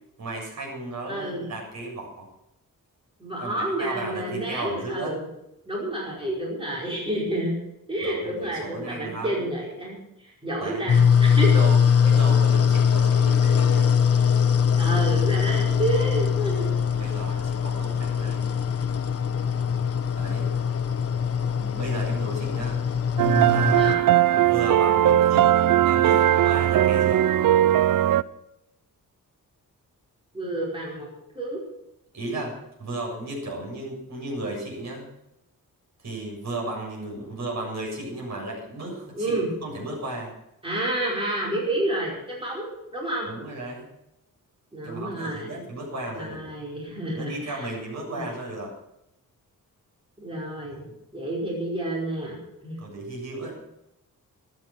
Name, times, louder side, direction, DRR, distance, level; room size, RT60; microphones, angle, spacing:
voice 1, 0.2-2.3 3.4-3.5 3.8-5.2 8.0-9.5 10.6-10.9 11.5-11.8 12.1-13.9 15.4-15.8 17.0-18.5 20.2-20.5 21.6-22.8 23.4-23.9 24.4-27.3 32.1-35.1 36.0-40.3 43.3-43.8 44.8-46.5 47.1-48.7 50.7-50.9 52.8-53.5, right 2 dB, 50° right, -2 dB, 7.3 m, -34 dB
voice 2, 1.1-1.5 3.2-5.3 5.7-7.6 7.9-10.0 10.2-11.6 12.0-12.1 14.7-16.7 17.0-17.1 23.7-24.0 30.3-31.6 39.1-39.5 40.6-43.3 44.7-45.6 46.1-47.8 48.1-48.4 50.2-50.8 51.1-52.8, right 1 dB, 15° right, -4 dB, 5.0 m, -29 dB
sound 1, 10.9-23.9, left 7 dB, 45° left, 0.9 m, -22 dB
sound 2, 23.2-28.2, right 12 dB, 70° right, 0.6 m, -19 dB
14.5 x 12.0 x 6.1 m, 0.86 s
wide cardioid pair, 165°, 34 cm